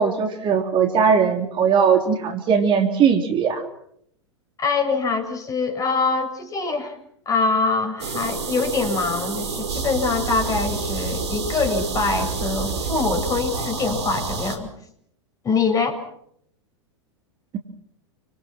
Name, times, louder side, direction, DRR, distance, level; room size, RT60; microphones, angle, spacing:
voice 1, 0.0-3.6, right 6 dB, 30° right, 5 dB, 3.7 m, -19 dB
voice 2, 4.6-7.0 7.3-14.7 15.4-16.0, left 4 dB, 20° left, 6 dB, 7.0 m, -24 dB
sound 1, 8.0-14.6, right 4 dB, 65° right, 5.5 m, -28 dB
29.5 x 26.0 x 6.0 m, 0.70 s
figure-of-eight pair, 95°, 15 cm